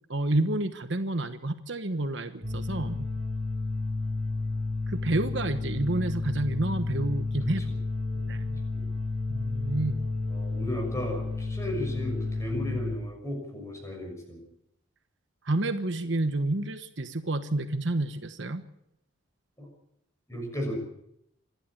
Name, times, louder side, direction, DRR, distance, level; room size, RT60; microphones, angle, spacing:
voice 1, 0.1-3.1 4.9-7.6 8.3-8.6 9.3-10.0 15.4-18.6, right 2 dB, 60° right, 9 dB, 1.2 m, -29 dB
sound 1, 2.4-13.0, left 3 dB, 35° right, 4.2 m, -31 dB
voice 2, 10.3-14.4 19.6-19.7 20.3-20.8, left 1 dB, 15° left, 2 dB, 6.3 m, -35 dB
27.0 x 11.5 x 8.8 m, 0.80 s
head